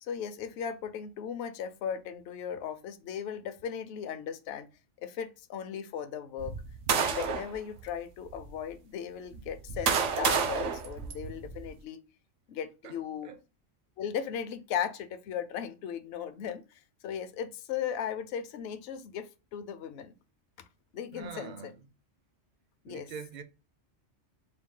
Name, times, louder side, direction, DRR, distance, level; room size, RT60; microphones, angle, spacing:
voice 1, 0.0-4.7 5.0-6.5 6.9-12.0 12.5-13.3 14.0-20.1 20.9-21.7 22.8-23.1, left 8 dB, 65° left, 0.8 m, -37 dB
sound 1, 6.4-7.5 8.3-8.4 9.3-11.7, right 6 dB, 80° right, 1.0 m, -30 dB
voice 2, 21.1-21.9 22.9-23.4, right 6 dB, 50° right, 0.6 m, -44 dB
4.5 x 2.3 x 3.6 m
omnidirectional pair, 1.2 m